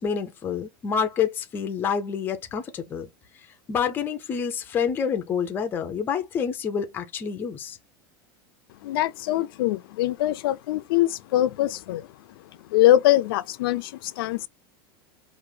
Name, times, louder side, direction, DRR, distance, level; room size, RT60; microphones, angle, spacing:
voice 1, 0.0-3.1 3.7-7.8, left 7 dB, 15° left, 0.5 m, -28 dB
voice 2, 8.8-12.1 12.7-14.5, left 14 dB, 70° left, 0.4 m, -23 dB
4.9 x 2.5 x 3.2 m
supercardioid pair, 170°, 12 cm